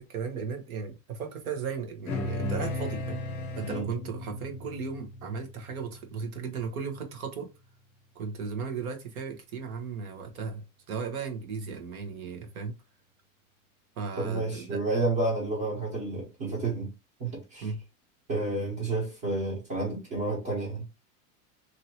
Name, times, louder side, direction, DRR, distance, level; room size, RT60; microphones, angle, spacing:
voice 1, 0.0-3.2 3.5-7.5 8.1-12.7 14.0-14.8 17.6-17.8, right 5 dB, 85° right, 1.2 m, -36 dB
sound 1, 2.1-6.8, left 2 dB, 25° left, 0.5 m, -36 dB
voice 2, 14.2-16.9 17.2-17.7 18.3-20.8, right 2 dB, 35° right, 1.2 m, -30 dB
2.9 x 2.8 x 2.9 m
supercardioid pair, 165°, 42 cm